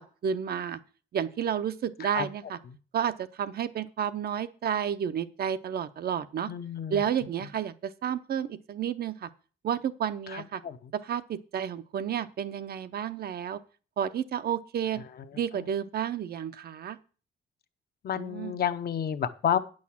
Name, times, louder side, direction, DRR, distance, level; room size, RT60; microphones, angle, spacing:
voice 1, 0.2-0.8 1.1-2.6 2.9-6.5 6.9-9.3 9.6-10.6 11.0-13.6 14.0-15.0 15.3-17.0 18.1-18.6, right 8 dB, 50° right, 12 dB, 0.7 m, -31 dB
voice 2, 6.5-7.0 10.3-10.8 18.0-19.6, left 9 dB, 50° left, 10 dB, 0.8 m, -30 dB
9.4 x 6.4 x 7.3 m, 0.38 s
cardioid pair, 170°, 21 cm